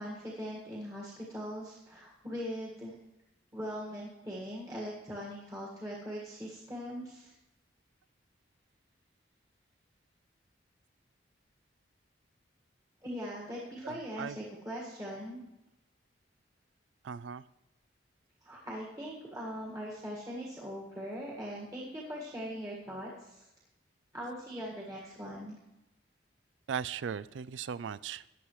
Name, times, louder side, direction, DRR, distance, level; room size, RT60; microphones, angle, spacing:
voice 1, 0.0-3.0 3.5-7.3 13.0-15.4 18.4-23.5 24.1-25.6, equal, 20° right, -4 dB, 1.7 m, -41 dB
voice 2, 13.8-14.4 17.0-17.4 26.7-28.2, right 7 dB, 80° right, 18 dB, 0.4 m, -38 dB
15.5 x 9.9 x 3.1 m, 0.96 s
head